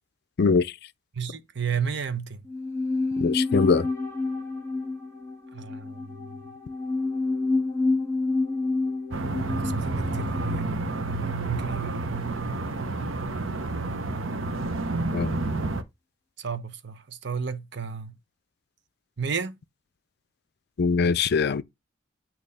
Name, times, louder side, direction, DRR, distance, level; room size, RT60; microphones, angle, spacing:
voice 1, 0.4-0.7 3.2-3.9 15.1-15.4 20.8-21.6, left 5 dB, 55° left, 0.4 m, -22 dB
voice 2, 1.1-2.4 5.5-6.4 9.5-10.8 11.2-12.4 16.4-18.2 19.2-19.6, right 6 dB, 65° right, 0.8 m, -32 dB
sound 1, 2.4-11.8 12.0-12.1, left 3 dB, 15° left, 1.9 m, -29 dB
sound 2, 9.1-15.8, right 2 dB, 85° right, 0.9 m, -29 dB
8.6 x 3.0 x 5.5 m
head